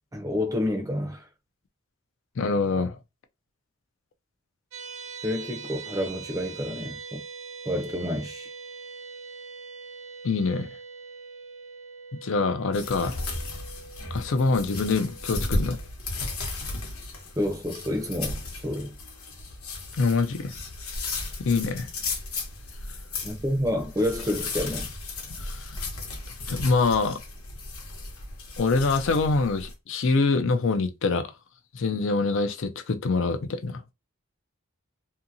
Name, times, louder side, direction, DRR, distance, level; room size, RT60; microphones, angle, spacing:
voice 1, 0.1-1.3 5.2-7.2 7.6-8.5 17.4-18.9 23.2-24.9, left 1 dB, 15° right, 0.5 m, -29 dB
voice 2, 2.4-3.0 10.2-10.7 12.1-13.2 14.1-15.8 20.0-20.5 21.4-21.9 25.4-25.6 26.5-27.2 28.6-31.3 31.7-33.8, left 4 dB, 60° left, 0.4 m, -25 dB
sound 1, 4.7-15.9, right 5 dB, 65° right, 0.5 m, -43 dB
sound 2, 12.7-29.7, left 2 dB, 85° left, 1.0 m, -35 dB
2.7 x 2.7 x 2.6 m
head